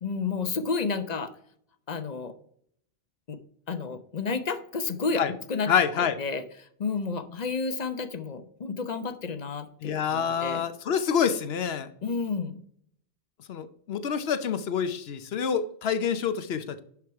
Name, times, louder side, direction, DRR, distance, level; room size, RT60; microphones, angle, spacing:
voice 1, 0.0-1.3 1.9-2.3 3.3-3.4 3.7-5.2 5.5-5.7 6.2-6.4 6.8-10.6 12.0-12.6, left 4 dB, 45° left, 10 dB, 0.8 m, -31 dB
voice 2, 5.7-6.2 9.8-11.9 13.5-16.8, left 7 dB, 75° left, 12 dB, 1.0 m, -27 dB
11.0 x 4.8 x 4.6 m, 0.67 s
omnidirectional pair, 1.1 m